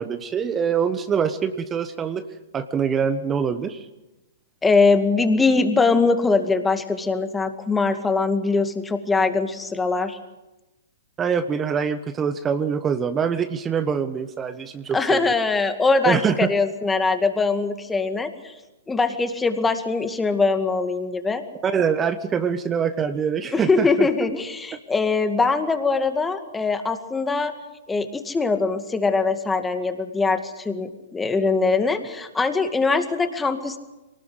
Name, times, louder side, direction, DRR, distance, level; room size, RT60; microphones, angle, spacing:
voice 1, 0.0-2.2 2.5-3.8 11.2-15.3 16.0-16.4 21.6-24.1, right 7 dB, 20° right, 10 dB, 1.2 m, -24 dB
voice 2, 4.6-10.2 14.9-18.5 18.9-21.4 23.5-27.5 27.9-33.8, left 4 dB, 10° left, 8 dB, 2.2 m, -22 dB
23.5 x 19.0 x 8.1 m, 1.0 s
hypercardioid pair, 120°, 0 cm